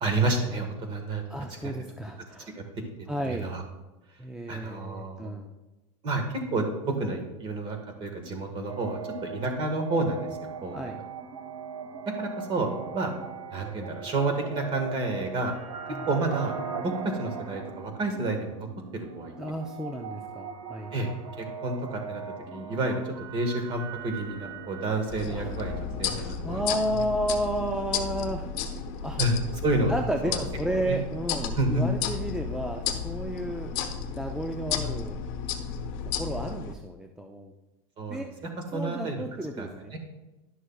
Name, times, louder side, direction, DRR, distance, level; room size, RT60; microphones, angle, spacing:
voice 1, 0.0-1.2 1.6-1.7 2.6-2.7 3.2-3.6 4.5-5.3 6.0-10.3 10.6-10.9 12.2-13.1 13.5-15.5 16.1-18.7 18.9-19.3 20.9-21.1 21.4-22.2 22.5-26.6 29.2-29.3 29.6-29.9 30.2-30.4 30.9-31.0 31.6-31.8 38.0-38.2 38.7-39.2 39.6-39.7 39.9-40.0, right 2 dB, 25° right, 4 dB, 1.5 m, -30 dB
voice 2, 1.3-2.6 3.1-3.5 4.2-5.5 10.7-11.0 15.9-16.1 19.4-20.9 25.3-25.5 26.1-29.2 29.9-33.7 34.1-35.2 36.2-37.5 38.1-38.3 38.7-40.0, right 1 dB, 5° right, 3 dB, 0.3 m, -32 dB
sound 1, 8.7-25.8, right 6 dB, 90° right, 0.9 m, -40 dB
sound 2, 25.1-36.7, left 7 dB, 50° left, 1.0 m, -33 dB
11.5 x 6.3 x 2.3 m, 1.0 s
supercardioid pair, 140°, 18 cm